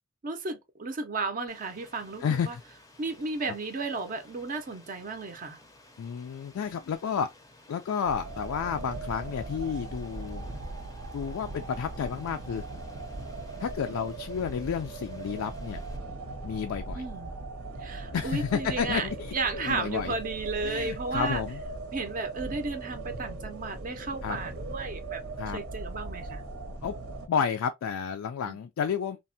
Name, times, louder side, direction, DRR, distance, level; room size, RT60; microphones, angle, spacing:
voice 1, 0.2-2.6 3.0-5.6 16.9-17.3 17.8-21.4 21.9-26.4 28.5-28.6, right 3 dB, 40° right, 0.5 m, -34 dB
Rain, 1.5-16.0, left 2 dB, 15° left, 0.5 m, -56 dB
voice 2, 2.2-2.6 6.0-7.3 7.7-10.4 11.1-12.6 13.6-15.8 16.4-17.0 18.1-20.1 20.6-21.6 24.2-24.4 25.4-25.6 26.8-27.0 27.3-29.2, left 7 dB, 75° left, 0.3 m, -31 dB
sound 1, 8.0-27.3, right 2 dB, 90° right, 0.7 m, -39 dB
3.3 x 2.1 x 2.6 m
head